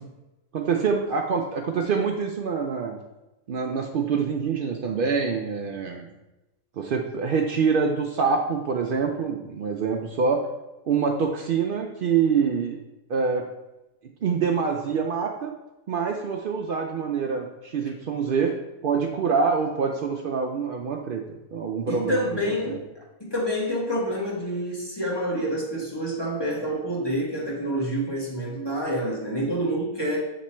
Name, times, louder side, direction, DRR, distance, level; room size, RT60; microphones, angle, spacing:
voice 1, 0.5-3.0 3.5-6.1 6.8-10.4 10.9-12.8 13.1-13.5 14.2-15.5 15.9-18.6 18.8-21.2 21.5-22.2 22.7-22.8, right 5 dB, 90° right, 2 dB, 0.4 m, -25 dB
voice 2, 21.9-22.9 23.2-30.2, equal, 20° left, -4 dB, 1.2 m, -27 dB
7.6 x 3.0 x 4.3 m, 1.0 s
omnidirectional pair, 1.5 m